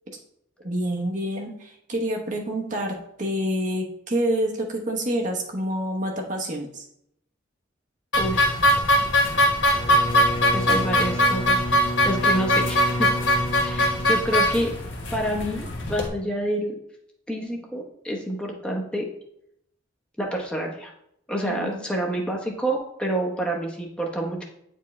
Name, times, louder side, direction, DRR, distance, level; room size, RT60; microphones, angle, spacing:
voice 1, 0.6-6.9 21.5-21.9, equal, 40° right, 1 dB, 0.9 m, -28 dB
sound 1, 8.1-16.1, equal, 70° left, 1.3 m, -22 dB
voice 2, 8.2-8.5 10.0-13.1 13.6-14.7 15.1-16.8 17.3-19.1 20.2-20.9 21.3-24.4, right 1 dB, 5° left, -1 dB, 0.9 m, -28 dB
Bowed string instrument, 9.6-15.0, left 1 dB, 25° left, 0.4 m, -31 dB
8.5 x 4.5 x 3.2 m, 0.76 s
head